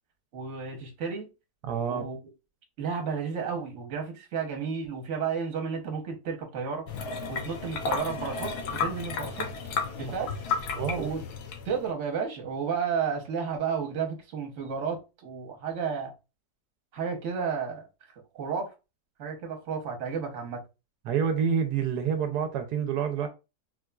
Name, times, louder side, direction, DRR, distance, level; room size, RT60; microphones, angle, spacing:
voice 1, 0.3-1.3 1.9-2.2 2.8-6.8 7.3-9.5 10.0-10.3 11.0-11.2 11.6-16.1 16.9-17.8 18.3-18.7 19.2-20.6, right 6 dB, 55° right, 1.2 m, -32 dB
voice 2, 1.6-2.0 10.1-10.3 10.7-11.1 21.0-23.3, right 7 dB, 90° right, 1.2 m, -28 dB
sound 1, 6.9-11.9, left 5 dB, 80° left, 1.2 m, -33 dB
4.2 x 2.4 x 2.2 m
omnidirectional pair, 1.7 m